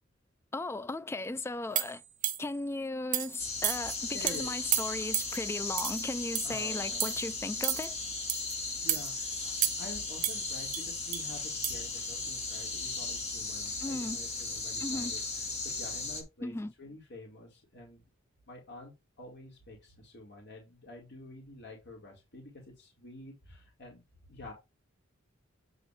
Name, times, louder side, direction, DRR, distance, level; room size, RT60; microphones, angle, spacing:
voice 1, 0.5-2.0 2.4-8.0 13.8-14.2 14.8-15.2 16.4-16.7, left 2 dB, 10° left, 0.3 m, -36 dB
sound 1, 1.7-2.6 3.1-3.4 3.6-4.0 4.3-4.4 4.7-5.4 5.8-6.0 6.3-6.6 7.0-7.2 7.6-7.9 8.3-8.5 8.9-9.1 9.6-10.0 10.2-11.2 11.6-11.7, right 11 dB, 40° right, 0.7 m, -32 dB
sound 2, 3.4-16.2, left 3 dB, 35° left, 1.6 m, -36 dB
voice 2, 4.1-4.5 6.4-7.2 8.6-16.5 16.8-18.0 18.5-22.5 22.8-24.0 24.3-24.5, left 1 dB, 55° left, 2.2 m, -48 dB
8.3 x 3.0 x 4.8 m
head